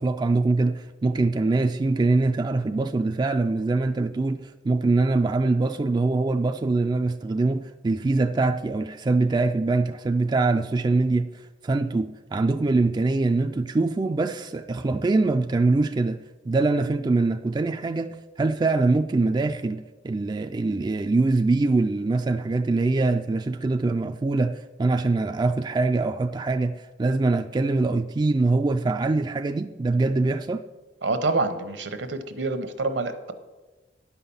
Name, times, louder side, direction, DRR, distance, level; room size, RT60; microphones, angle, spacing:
voice 1, 0.0-16.2 16.5-30.6, right 3 dB, 25° right, 0.3 m, -23 dB
voice 2, 31.0-33.3, right 3 dB, 70° right, 0.9 m, -27 dB
10.0 x 5.7 x 7.0 m
head